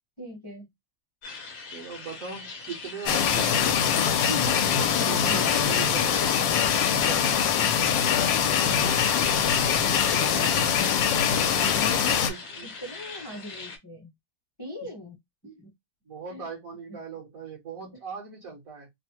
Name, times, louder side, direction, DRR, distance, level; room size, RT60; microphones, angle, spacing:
voice 1, 0.2-0.7 4.9-5.4 11.3-12.3 12.6-14.1 14.6-15.1 15.6-15.7 16.3-16.5 16.9-17.0, equal, 20° left, 0.7 m, -41 dB
sound 1, 1.2-13.8, left 4 dB, 55° left, 1.1 m, -41 dB
voice 2, 1.7-3.8 4.3-6.5 8.9-9.0 9.8-10.7 11.1-11.3 12.1-12.7 14.8-14.9 15.4-15.6 16.1-18.9, right 5 dB, 55° right, 1.2 m, -40 dB
sound 2, 3.1-12.3, left 8 dB, 75° left, 1.3 m, -23 dB
3.3 x 2.1 x 2.8 m
omnidirectional pair, 2.1 m